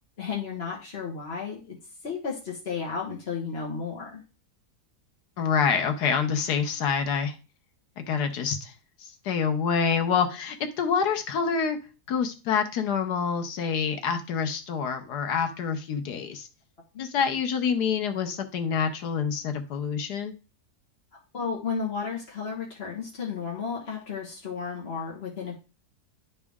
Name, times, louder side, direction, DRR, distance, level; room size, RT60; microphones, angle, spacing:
voice 1, 0.2-1.8 2.0-4.2 16.9-17.0 21.3-25.5, left 5 dB, 40° left, -3 dB, 1.5 m, -33 dB
voice 2, 5.4-7.3 8.0-8.7 9.0-11.8 12.1-16.5 17.0-20.3, left 6 dB, 80° left, 6 dB, 1.4 m, -27 dB
11.0 x 4.2 x 3.5 m, 0.32 s
omnidirectional pair, 1.7 m